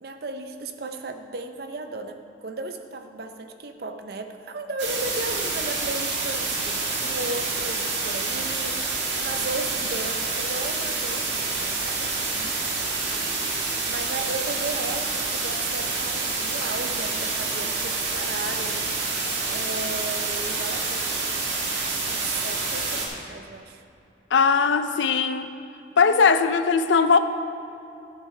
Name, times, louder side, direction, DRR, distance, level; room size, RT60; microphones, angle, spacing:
voice 1, 0.0-12.9 13.9-18.9 19.5-21.4 22.1-23.8, right 2 dB, 55° right, 6 dB, 0.6 m, -35 dB
sound 1, 4.8-23.1, right 3 dB, 85° right, 1.6 m, -28 dB
voice 2, 24.3-25.5 26.0-27.2, left 5 dB, 80° left, 10 dB, 0.5 m, -19 dB
13.0 x 8.2 x 3.3 m, 2.7 s
head